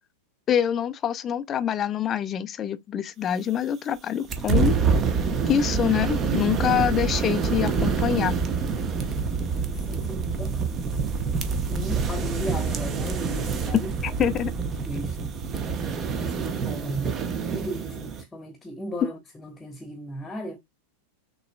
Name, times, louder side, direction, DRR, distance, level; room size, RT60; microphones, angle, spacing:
voice 1, 0.5-4.8 5.5-8.4 14.2-14.5, left 9 dB, 25° left, 0.4 m, -25 dB
sound 1, 4.3-18.2, right 5 dB, 25° right, 0.8 m, -26 dB
voice 2, 9.6-11.2 11.7-13.9 14.3-15.3 16.2-20.6, equal, 10° left, 1.1 m, -37 dB
6.5 x 3.0 x 2.2 m
figure-of-eight pair, 90°, 0 cm